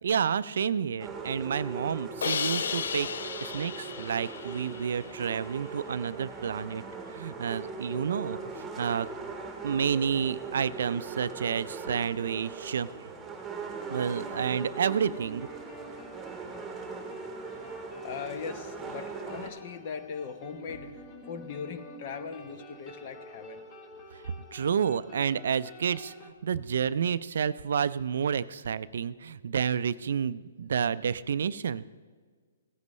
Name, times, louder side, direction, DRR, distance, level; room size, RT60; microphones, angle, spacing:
voice 1, 0.0-3.1 3.4-6.8 7.1-9.1 9.6-12.9 13.9-15.5 24.5-31.8, right 7 dB, 70° right, 16 dB, 0.4 m, -30 dB
sound 1, 1.0-19.5, right 4 dB, 10° right, 1.3 m, -40 dB
Crash cymbal, 2.2-5.3, left 7 dB, 75° left, 0.3 m, -34 dB
sound 2, 13.8-26.3, equal, 25° left, 1.2 m, -48 dB
voice 2, 18.0-23.6, left 6 dB, 45° left, 10 dB, 0.9 m, -39 dB
16.5 x 9.6 x 3.2 m, 1.5 s
hypercardioid pair, 140°, 0 cm